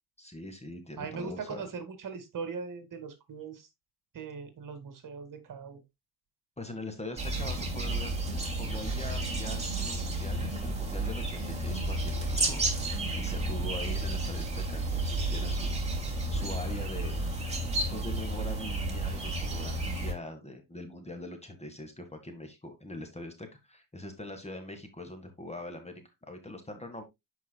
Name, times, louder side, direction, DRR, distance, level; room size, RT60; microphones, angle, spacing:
voice 1, 0.2-1.7 6.6-8.1 8.6-12.6 13.2-15.8 16.3-17.2 17.9-27.0, left 1 dB, 15° left, 1.6 m, -42 dB
voice 2, 1.0-3.7 4.1-5.8, right 5 dB, 45° right, 2.0 m, -40 dB
sound 1, 7.2-20.1, right 2 dB, 15° right, 2.6 m, -32 dB
10.5 x 4.8 x 2.2 m
cardioid pair, 80°, 43 cm